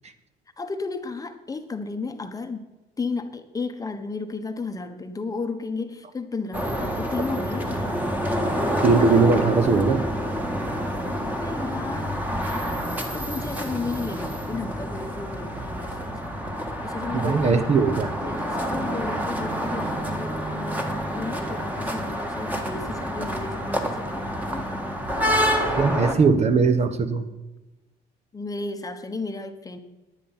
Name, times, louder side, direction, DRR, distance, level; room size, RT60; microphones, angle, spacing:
voice 1, 0.6-2.6 3.0-8.0 11.3-12.2 13.1-16.4 16.8-17.7 18.2-24.3 24.5-24.7 28.3-29.8, left 4 dB, 20° left, 7 dB, 1.0 m, -33 dB
sound 1, 6.5-26.1, equal, 10° right, 1.6 m, -28 dB
voice 2, 8.8-10.1 17.1-18.1 25.8-27.3, right 4 dB, 40° right, 9 dB, 1.0 m, -20 dB
10.0 x 9.8 x 5.6 m, 1.1 s
cardioid pair, 110°, 17 cm